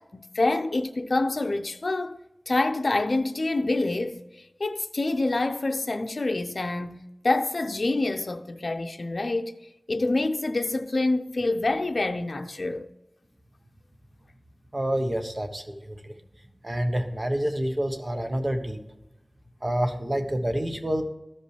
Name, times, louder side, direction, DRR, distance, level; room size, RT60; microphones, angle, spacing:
voice 1, 0.0-2.2 2.5-4.2 4.6-9.6 9.9-12.9, left 2 dB, 65° left, 0.6 m, -26 dB
voice 2, 14.7-16.1 16.6-18.8 19.6-21.0, right 1 dB, 35° right, 1.1 m, -28 dB
14.0 x 5.3 x 3.3 m
wide cardioid pair, 65°, 0 cm